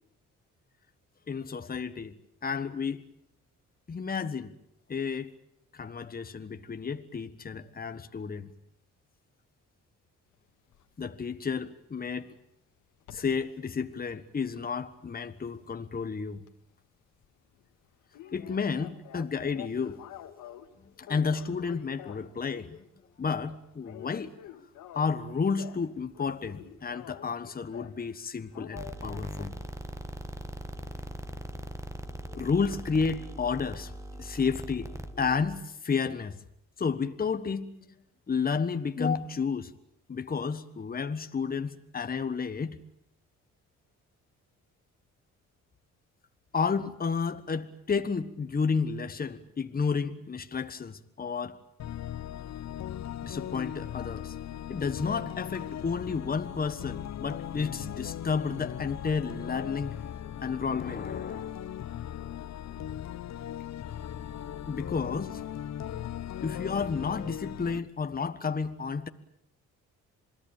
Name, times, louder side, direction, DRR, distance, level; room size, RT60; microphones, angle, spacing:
voice 1, 1.3-2.2 2.4-3.0 3.9-4.5 4.9-5.4 5.7-8.5 11.0-12.3 13.1-16.4 18.3-20.3 21.0-22.8 23.2-24.3 24.9-29.6 32.3-36.4 36.8-37.8 38.3-39.7 40.1-42.8 46.5-51.6 53.2-54.4 54.7-59.9 60.4-61.6 64.7-65.4 66.4-69.1, left 5 dB, 30° left, 1.4 m, -31 dB
sound 1, 10.7-10.9 13.0-13.5 13.9-16.0 16.3-16.5 16.8-16.9 17.2-17.3 17.6-17.7 18.1-20.7 21.0-22.8 23.1-23.4 23.8-25.9 26.1-28.0 28.5-29.5, left 12 dB, 85° left, 2.1 m, -47 dB
sound 2, 28.8-35.6, right 1 dB, 10° right, 1.7 m, -40 dB
sound 3, 51.8-67.8, left 10 dB, 60° left, 1.2 m, -38 dB
28.0 x 20.0 x 8.9 m
cardioid pair, 90°, 30 cm